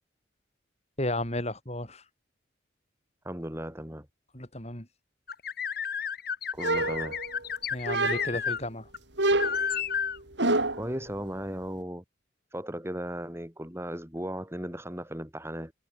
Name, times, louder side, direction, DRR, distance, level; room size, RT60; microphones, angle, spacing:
voice 1, 1.0-2.0 4.3-4.9 7.7-8.9, left 1 dB, 35° left, 7.4 m, -33 dB
voice 2, 3.2-4.1 6.5-7.2 10.8-12.0 12.5-15.7, equal, 15° right, 4.9 m, -36 dB
sound 1, 5.3-8.6 8.9-9.0 9.4-10.2, left 7 dB, 50° left, 2.5 m, -32 dB
sound 2, 6.6-7.5 7.9-8.5 9.2-10.9, right 2 dB, 65° right, 3.8 m, -27 dB
head